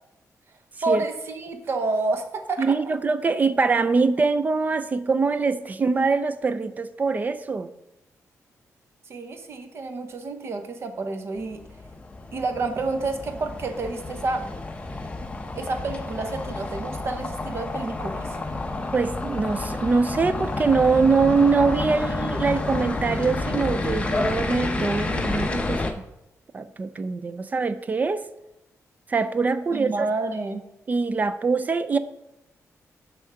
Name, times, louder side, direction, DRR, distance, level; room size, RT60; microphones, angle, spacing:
voice 1, 0.8-2.7 9.1-11.6 12.3-14.4 15.6-18.3 29.7-30.6, right 3 dB, 45° right, 7 dB, 0.9 m, -29 dB
voice 2, 2.6-7.7 18.9-25.9 26.5-28.3 29.1-30.1 30.9-32.0, right 4 dB, 30° right, 13 dB, 0.4 m, -23 dB
sound 1, 11.4-25.9, left 2 dB, 20° left, 0.7 m, -30 dB
10.0 x 3.6 x 5.7 m, 0.90 s
wide cardioid pair, 160°, 6 cm